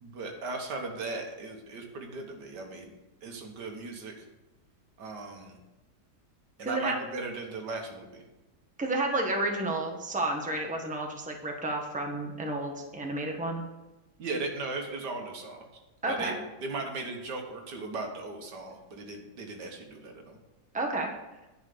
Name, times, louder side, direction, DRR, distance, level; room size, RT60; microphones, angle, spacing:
voice 1, 0.0-2.9 3.2-4.3 5.0-5.6 6.6-8.2 14.2-15.7 16.1-16.3 16.6-20.4, right 3 dB, 85° right, 3 dB, 2.0 m, -37 dB
voice 2, 6.6-7.0 8.8-13.6 16.0-16.4 20.7-21.1, right 2 dB, 5° right, 2 dB, 1.0 m, -31 dB
10.5 x 4.9 x 6.8 m, 1.1 s
omnidirectional pair, 1.8 m